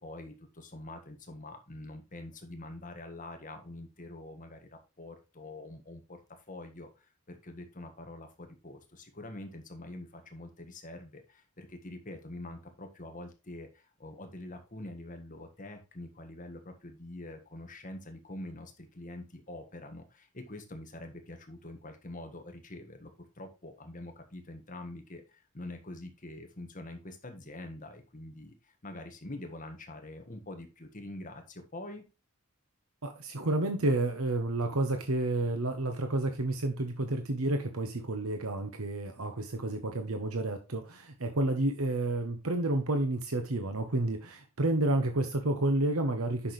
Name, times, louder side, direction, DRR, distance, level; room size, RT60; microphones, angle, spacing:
voice 1, 0.0-32.0, left 1 dB, 35° left, 5 dB, 1.6 m, -45 dB
voice 2, 33.0-46.5, right 2 dB, 80° right, 6 dB, 1.2 m, -30 dB
9.9 x 6.3 x 3.2 m, 0.29 s
head